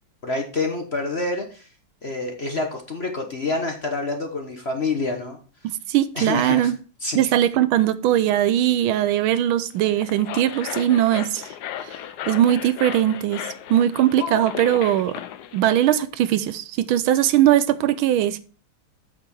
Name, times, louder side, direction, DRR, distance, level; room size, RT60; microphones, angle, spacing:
voice 1, 0.2-1.7 2.0-5.4 6.1-6.7 7.0-7.3, left 3 dB, 40° left, 1.1 m, -27 dB
voice 2, 5.6-6.8 7.1-11.5 11.8-12.0 12.3-13.4 13.7-15.2 15.5-18.4, right 12 dB, 75° right, 1.3 m, -20 dB
sound 1, 9.8-16.0, left 11 dB, 70° left, 1.0 m, -35 dB
8.2 x 6.8 x 4.7 m
omnidirectional pair, 2.3 m